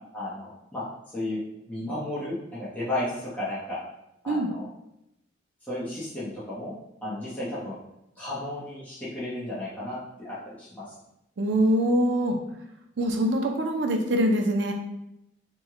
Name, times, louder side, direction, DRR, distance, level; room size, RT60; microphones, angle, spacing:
voice 1, 0.1-0.8 1.1-1.4 1.7-3.8 4.2-4.7 5.7-6.7 7.0-7.8 8.2-10.9, left 1 dB, 10° left, -11 dB, 0.7 m, -33 dB
voice 2, 11.4-12.4 13.0-14.7, equal, 65° right, 3 dB, 0.5 m, -24 dB
3.0 x 2.1 x 3.5 m, 0.84 s
head